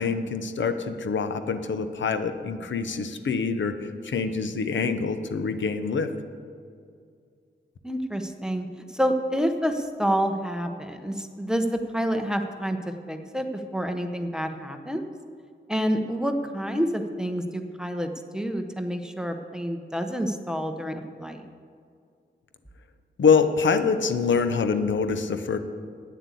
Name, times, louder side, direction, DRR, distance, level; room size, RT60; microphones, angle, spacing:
voice 1, 0.0-6.1 23.2-25.6, left 5 dB, 75° left, 9 dB, 0.7 m, -25 dB
voice 2, 7.8-8.7 8.9-12.8 13.1-15.0 15.7-21.4, equal, 5° right, 6 dB, 0.6 m, -28 dB
9.4 x 7.6 x 8.3 m, 2.3 s
wide cardioid pair, 165°, 19 cm